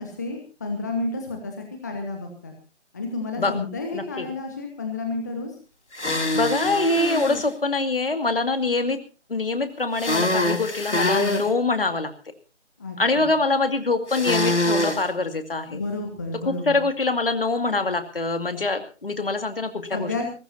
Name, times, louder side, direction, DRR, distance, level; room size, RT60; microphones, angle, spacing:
voice 1, 0.0-2.5 2.9-5.6 12.8-13.4 15.7-16.8 19.9-20.3, left 3 dB, 15° left, 3 dB, 1.2 m, -31 dB
voice 2, 3.9-4.3 6.3-9.0 9.3-12.1 13.0-15.8 16.5-20.1, left 3 dB, 50° left, 7 dB, 2.4 m, -24 dB
sound 1, 5.9-7.4 10.0-11.5 14.1-15.0, left 2 dB, 70° left, 2.9 m, -24 dB
22.5 x 18.5 x 2.8 m, 0.33 s
figure-of-eight pair, 155°, 37 cm